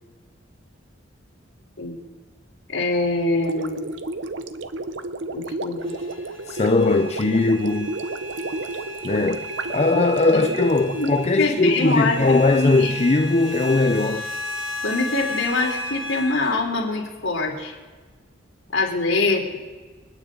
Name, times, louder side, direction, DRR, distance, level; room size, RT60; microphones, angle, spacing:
voice 1, 2.7-3.9 5.3-5.9 10.3-10.5 11.0-12.2 12.6-12.9 14.8-17.7 18.7-19.6, left 3 dB, 75° left, 3.7 m, -24 dB
Gurgling, 3.4-11.8, right 2 dB, 65° right, 0.8 m, -32 dB
sound 1, 5.8-16.6, left 1 dB, 45° right, 4.3 m, -34 dB
voice 2, 6.5-7.9 9.0-14.3, left 2 dB, 35° left, 0.5 m, -20 dB
28.5 x 9.5 x 3.8 m
head